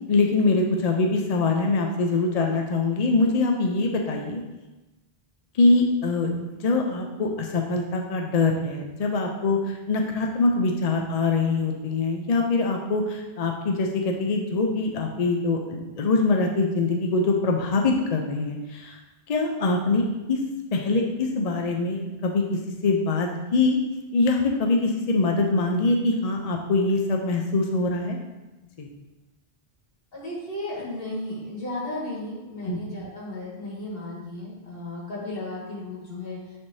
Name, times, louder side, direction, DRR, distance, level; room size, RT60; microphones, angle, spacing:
voice 1, 0.1-4.4 5.5-19.0 19.3-20.4 20.7-23.8 24.1-28.2 28.8-28.9 32.6-32.8, left 3 dB, 45° left, 1 dB, 0.6 m, -23 dB
voice 2, 30.1-36.4, left 1 dB, 65° left, -6 dB, 2.2 m, -34 dB
9.7 x 3.5 x 2.7 m, 1.1 s
omnidirectional pair, 1.0 m